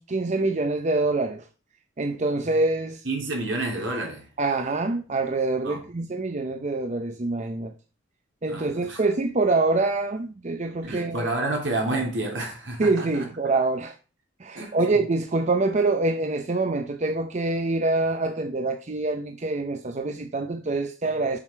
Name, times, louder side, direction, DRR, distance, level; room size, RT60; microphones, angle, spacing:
voice 1, 0.0-1.5 2.0-3.0 4.4-7.7 8.4-11.3 12.8-14.0 14.4-21.4, right 3 dB, 40° right, 0.6 m, -25 dB
voice 2, 3.0-4.3 5.6-5.8 8.5-9.0 10.8-13.2 14.5-15.0, right 2 dB, 75° right, 3.4 m, -29 dB
7.4 x 6.3 x 4.6 m
head